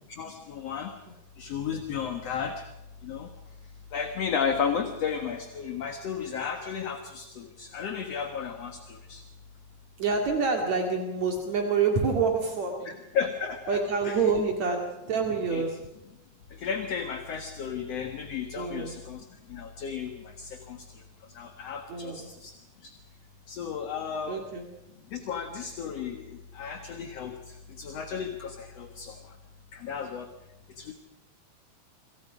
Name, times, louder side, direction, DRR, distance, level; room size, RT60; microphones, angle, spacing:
voice 1, 0.2-0.9 1.4-2.6 3.0-3.3 3.9-9.2 13.1-13.8 14.1-14.2 15.5-15.6 16.5-20.8 21.3-22.5 22.8-22.9 23.5-24.4 25.1-29.2 29.7-30.3 30.8-30.9, left 7 dB, 60° left, 5 dB, 2.6 m, -33 dB
voice 2, 10.0-12.9 13.7-15.8 18.5-19.0 21.9-22.3 24.3-24.7, right 5 dB, 65° right, 2 dB, 3.6 m, -27 dB
28.0 x 26.0 x 5.1 m, 0.91 s
omnidirectional pair, 3.4 m